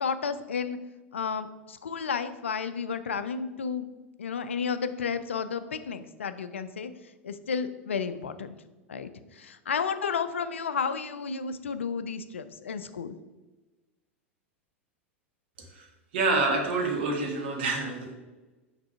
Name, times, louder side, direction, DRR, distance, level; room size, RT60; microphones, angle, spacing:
voice 1, 0.0-0.8 1.1-3.9 4.2-6.9 7.2-8.5 8.9-9.1 9.4-13.2, left 6 dB, 70° left, 11 dB, 0.4 m, -32 dB
voice 2, 16.1-18.1, right 3 dB, 55° right, 2 dB, 1.3 m, -27 dB
6.1 x 3.3 x 5.5 m, 1.2 s
figure-of-eight pair, 90°, 7 cm